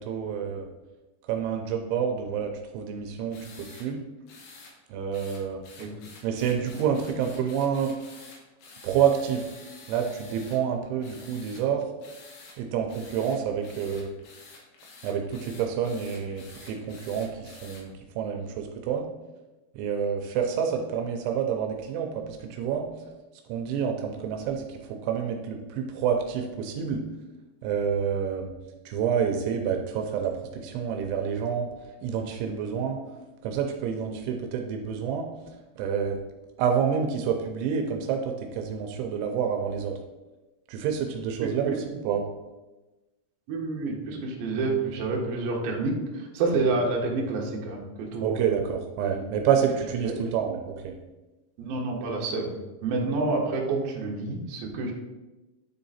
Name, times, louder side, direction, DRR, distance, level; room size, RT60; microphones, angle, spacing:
voice 1, 0.1-0.7 1.3-4.0 4.9-5.6 6.2-8.0 8.8-9.5 9.9-11.8 12.6-14.1 15.0-19.0 19.8-22.9 23.5-27.0 27.6-28.5 28.9-31.7 32.0-33.0 33.4-35.3 35.8-36.2 36.6-40.0 40.7-42.2 48.2-51.0, right 7 dB, 85° right, 3 dB, 3.0 m, -28 dB
sound 1, 3.3-3.9 4.3-4.7 5.1-10.6 11.0-11.6 12.0-12.6 12.9-17.8, left 3 dB, 75° left, 3.5 m, -49 dB
voice 2, 41.4-41.8 43.5-48.6 49.0-49.2 50.0-50.1 51.6-52.5 52.8-54.9, right 3 dB, 70° right, -1 dB, 2.6 m, -28 dB
9.6 x 3.8 x 4.2 m, 1.1 s
omnidirectional pair, 5.3 m